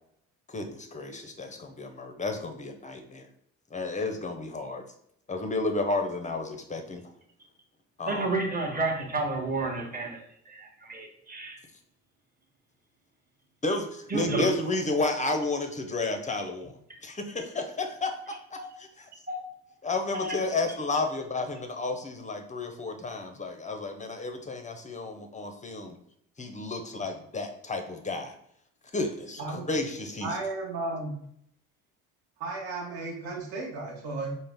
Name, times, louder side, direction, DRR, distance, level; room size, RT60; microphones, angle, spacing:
voice 1, 0.5-3.3 3.7-4.8 5.3-7.0 8.0-8.3 13.6-16.8 17.0-18.1 18.5-19.1 19.8-26.0 26.4-28.3 28.9-30.3, left 2 dB, 20° left, 5 dB, 0.5 m, -32 dB
voice 2, 8.1-10.2 10.5-11.6 14.1-14.5 18.6-18.7 19.3-19.4 20.1-20.4, right 2 dB, 25° right, 1 dB, 1.0 m, -30 dB
voice 3, 30.2-31.1 32.4-34.3, right 3 dB, 70° right, -1 dB, 1.0 m, -34 dB
3.8 x 2.0 x 3.4 m, 0.70 s
hypercardioid pair, 60°, 39 cm